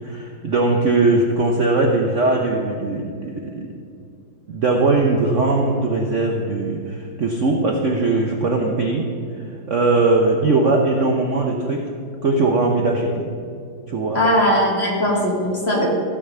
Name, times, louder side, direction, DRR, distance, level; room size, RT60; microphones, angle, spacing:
voice 1, 0.0-3.7 4.5-9.1 9.7-11.8 12.2-13.3 13.9-14.2, right 3 dB, 55° right, 1 dB, 0.9 m, -20 dB
voice 2, 14.1-15.9, equal, 35° left, -4 dB, 2.5 m, -19 dB
15.0 x 5.0 x 6.8 m, 2.4 s
omnidirectional pair, 2.1 m